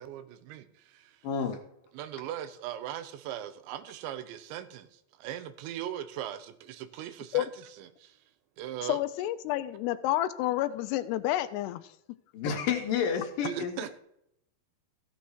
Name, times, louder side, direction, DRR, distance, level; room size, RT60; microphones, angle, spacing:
voice 1, 0.0-1.3 1.9-8.2 8.6-9.0 13.4-14.0, right 11 dB, 85° right, 3.1 m, -39 dB
voice 2, 1.2-1.6 12.3-13.7, left 7 dB, 65° left, 2.6 m, -30 dB
voice 3, 8.8-11.9, left 14 dB, 85° left, 2.5 m, -29 dB
15.5 x 7.2 x 4.6 m
omnidirectional pair, 5.1 m